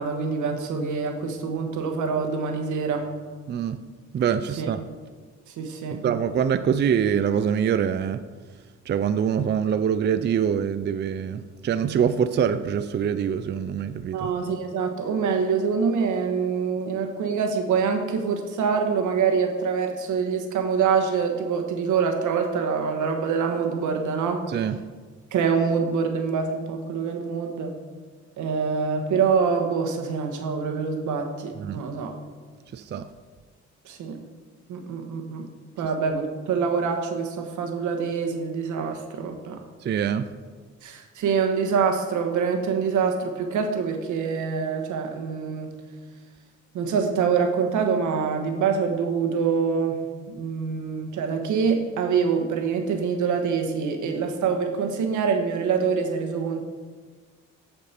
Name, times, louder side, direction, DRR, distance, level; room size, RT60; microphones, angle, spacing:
voice 1, 0.0-3.1 4.6-4.7 5.6-6.0 14.1-24.4 25.3-27.7 28.4-32.1 33.8-34.2 34.7-35.5 35.8-39.6 40.8-45.7 46.7-50.0 50.3-56.6, right 6 dB, 80° right, 4 dB, 1.4 m, -25 dB
voice 2, 3.5-3.8 4.1-4.9 6.0-8.2 8.9-14.3 24.5-24.8 31.6-31.8 32.7-33.1 39.8-40.3, right 8 dB, 35° right, 11 dB, 0.4 m, -24 dB
14.5 x 5.2 x 4.4 m, 1.5 s
cardioid pair, 90°, 30 cm